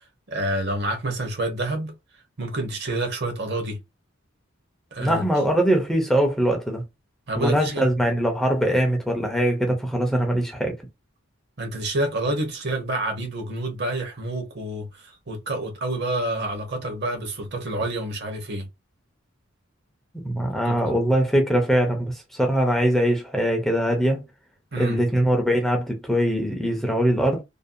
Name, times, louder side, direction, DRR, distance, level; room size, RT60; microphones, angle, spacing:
voice 1, 0.0-1.9 2.4-3.8 4.9-5.2 7.3-7.9 11.6-18.6 20.7-21.0 24.7-25.0, right 1 dB, 55° right, 0.8 m, -28 dB
voice 2, 5.0-6.8 7.4-10.7 20.1-24.2 24.8-27.4, equal, ahead, 0.4 m, -22 dB
2.5 x 2.1 x 2.5 m
head